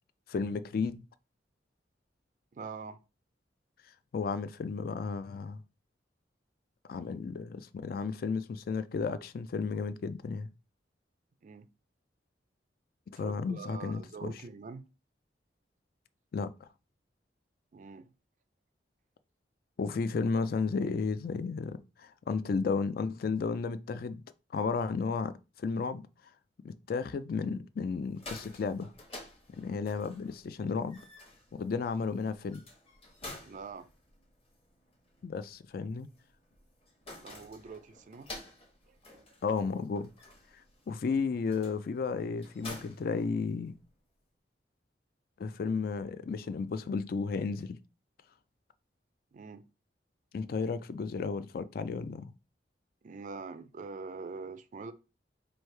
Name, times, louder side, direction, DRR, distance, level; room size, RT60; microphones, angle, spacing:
voice 1, 0.3-1.0 4.1-5.6 6.9-10.5 13.1-14.3 16.3-16.7 19.8-24.2 24.5-26.0 26.6-28.9 29.5-31.0 31.5-32.6 35.2-36.1 39.4-40.1 40.9-43.7 45.4-47.8 50.3-52.3, left 4 dB, 55° left, 0.3 m, -33 dB
voice 2, 2.5-3.0 11.4-11.7 13.1-14.8 17.7-18.1 33.5-33.9 37.2-38.3 38.9-39.0 49.3-49.6 53.0-54.9, right 4 dB, 45° right, 0.3 m, -44 dB
sound 1, 28.0-43.9, left 2 dB, 30° left, 1.1 m, -51 dB
3.2 x 2.6 x 4.4 m
head